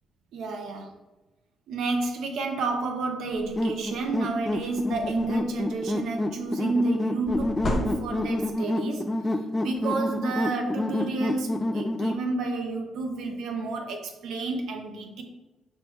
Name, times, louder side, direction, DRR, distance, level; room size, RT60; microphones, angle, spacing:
voice 1, 0.3-0.9 1.7-9.1 9.6-15.2, right 3 dB, 80° right, 3 dB, 0.7 m, -30 dB
sound 1, 3.3-3.6 4.1-4.2 4.5-5.6 7.3-8.5, left 1 dB, 45° left, 0.8 m, -33 dB
sound 2, 3.6-12.2, left 1 dB, 15° left, 0.3 m, -29 dB
4.7 x 3.2 x 3.1 m, 1.1 s
cardioid pair, 90°, 0 cm